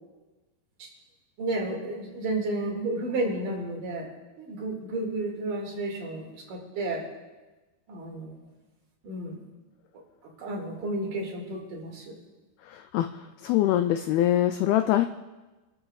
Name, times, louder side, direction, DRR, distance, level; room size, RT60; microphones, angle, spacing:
voice 1, 1.4-4.1 4.4-7.0 7.9-8.4 9.0-9.4 10.4-12.2, right 2 dB, 55° right, -1 dB, 3.5 m, -32 dB
voice 2, 12.7-13.1 13.4-15.1, left 13 dB, 85° left, 8 dB, 2.1 m, -23 dB
26.0 x 13.0 x 2.4 m, 1.2 s
omnidirectional pair, 4.8 m